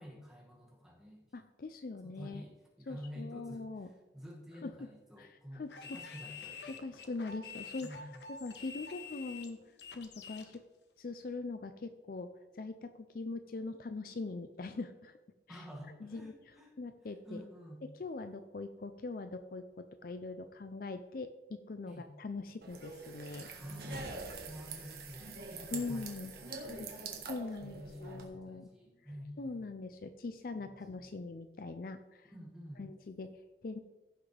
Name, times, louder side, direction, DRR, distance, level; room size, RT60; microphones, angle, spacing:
voice 1, 0.0-1.3 2.0-7.0 7.8-8.2 15.5-16.8 17.0-17.9 21.9-22.1 23.6-26.9 27.6-29.6 31.0-31.2 32.2-32.9, equal, 5° right, -4 dB, 2.0 m, -49 dB
voice 2, 1.3-2.4 2.9-3.9 4.6-4.9 5.2-6.0 6.7-7.9 8.3-9.6 9.9-10.6 11.0-15.2 15.5-15.6 16.0-16.3 16.8-17.4 17.8-23.5 25.7-26.3 26.6-26.9 27.3-28.7 29.4-32.3 32.8-33.8, left 3 dB, 50° left, 9 dB, 0.4 m, -42 dB
sound 1, 5.7-10.5, left 5 dB, 70° left, 1.0 m, -48 dB
sound 2, 22.6-28.2, right 4 dB, 55° right, 1.5 m, -45 dB
15.5 x 6.0 x 3.4 m, 1.2 s
head